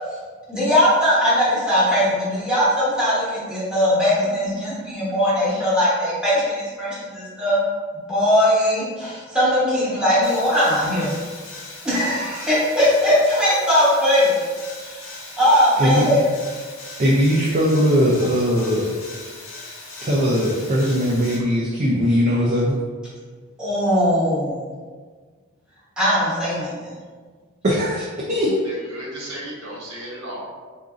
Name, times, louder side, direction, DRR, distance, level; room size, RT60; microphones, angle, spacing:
voice 1, 0.5-7.7 8.1-11.2 11.8-14.3 14.8-15.1 15.4-16.2 23.6-24.7 26.0-26.9, equal, 5° right, -10 dB, 0.9 m, -20 dB
sound 1, 10.2-21.4, left 2 dB, 65° left, 0.7 m, -39 dB
voice 2, 17.0-18.9 20.0-22.8 27.6-28.6, equal, 35° right, -5 dB, 0.4 m, -19 dB
voice 3, 28.6-30.5, right 1 dB, 60° right, -6 dB, 0.9 m, -34 dB
3.8 x 2.6 x 2.4 m, 1.5 s
head